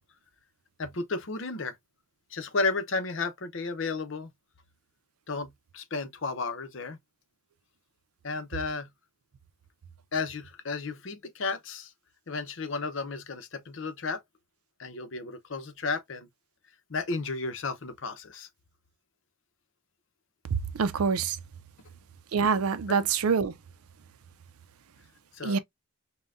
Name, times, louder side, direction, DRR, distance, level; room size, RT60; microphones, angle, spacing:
voice 1, 0.8-1.8 2.3-4.3 5.3-7.0 8.2-8.9 10.1-11.9 12.3-14.2 14.8-16.3 16.9-18.5 22.9-23.0 25.3-25.6, left 3 dB, 60° left, 0.7 m, -33 dB
voice 2, 20.8-21.4 22.3-23.5 25.4-25.6, right 5 dB, 90° right, 0.5 m, -25 dB
5.3 x 2.2 x 2.5 m
head